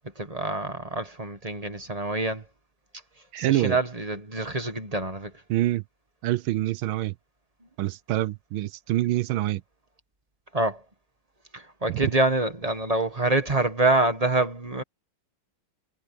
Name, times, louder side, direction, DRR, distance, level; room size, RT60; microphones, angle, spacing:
voice 1, 0.2-2.4 3.4-5.3 10.5-10.8 11.5-14.8, right 2 dB, 20° right, 1.3 m, -26 dB
voice 2, 3.3-3.8 5.5-5.8 6.2-7.1 7.8-9.6 11.9-12.0, right 15 dB, 90° right, 1.5 m, -26 dB
omnidirectional pair, 2.1 m